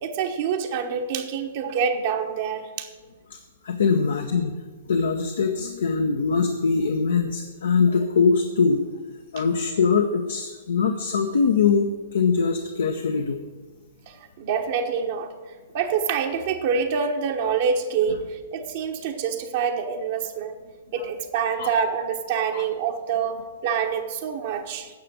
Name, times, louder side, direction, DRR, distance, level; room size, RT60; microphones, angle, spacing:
voice 1, 0.0-2.9 9.4-9.5 14.1-15.3 15.7-20.6 20.9-24.9, right 6 dB, 50° right, 3 dB, 1.0 m, -26 dB
voice 2, 3.6-4.6 4.9-8.8 9.3-13.4 21.6-21.7 22.5-22.6, left 5 dB, 65° left, 5 dB, 0.8 m, -22 dB
9.5 x 6.8 x 8.2 m, 1.4 s
figure-of-eight pair, 110°, 0 cm